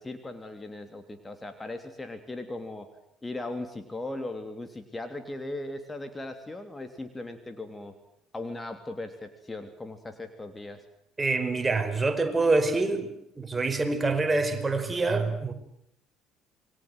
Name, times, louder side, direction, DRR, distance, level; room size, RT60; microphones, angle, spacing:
voice 1, 0.0-2.9 3.2-7.9 8.3-10.8, left 2 dB, 15° left, 3.2 m, -38 dB
voice 2, 11.2-15.5, right 3 dB, 20° right, 5.0 m, -26 dB
28.5 x 22.5 x 8.0 m
hypercardioid pair, 55°, 0 cm